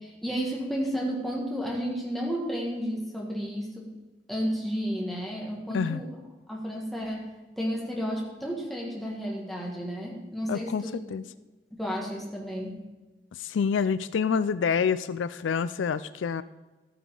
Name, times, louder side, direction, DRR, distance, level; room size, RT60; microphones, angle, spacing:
voice 1, 0.0-3.9 4.3-6.1 6.5-10.9 11.7-12.8, equal, ahead, -3 dB, 2.0 m, -32 dB
voice 2, 10.5-11.2 13.4-16.4, left 6 dB, 90° left, 15 dB, 0.4 m, -27 dB
13.0 x 9.4 x 3.9 m, 1.1 s
head